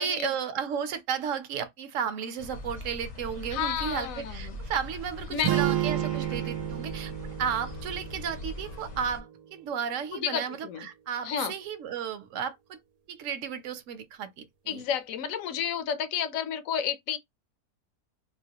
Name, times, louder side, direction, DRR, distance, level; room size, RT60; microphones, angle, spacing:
voice 1, 0.0-7.1 7.4-12.8 13.1-14.8, right 7 dB, 60° right, 0.9 m, -33 dB
sound 1, 2.4-9.2, left 1 dB, 40° left, 0.6 m, -41 dB
voice 2, 3.5-4.6 5.3-6.1 10.1-10.9 11.2-11.5 14.7-17.2, left 8 dB, 70° left, 0.9 m, -31 dB
sound 2, 5.4-9.6, right 13 dB, 85° right, 1.2 m, -32 dB
3.9 x 2.2 x 2.8 m
omnidirectional pair, 1.7 m